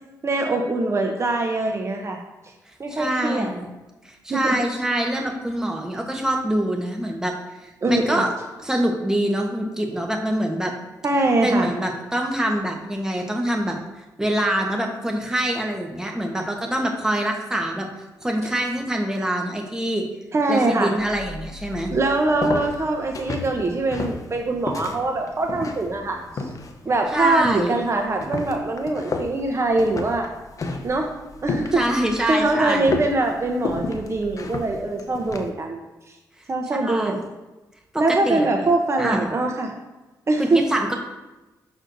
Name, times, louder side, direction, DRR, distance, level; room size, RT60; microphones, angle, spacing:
voice 1, 0.2-2.2 2.8-3.5 4.3-4.5 7.8-8.2 11.0-11.7 20.3-20.9 21.9-26.2 26.8-30.3 30.8-31.1 31.4-31.8 32.2-35.8 36.5-37.2 38.0-39.7 40.3-40.6, right 2 dB, 40° right, 2 dB, 0.8 m, -23 dB
voice 2, 2.9-3.7 4.0-7.4 7.6-8.3 8.6-10.7 11.4-13.8 14.2-17.9 18.2-20.0 20.5-21.9 27.1-27.7 31.7-32.9 36.8-37.3 37.9-38.5 39.0-39.3 40.4-40.9, right 1 dB, 10° right, 1 dB, 1.2 m, -25 dB
sound 1, 21.0-35.5, left 3 dB, 50° left, 0.7 m, -33 dB
6.3 x 6.2 x 2.6 m, 1.1 s
cardioid pair, 70°, 7 cm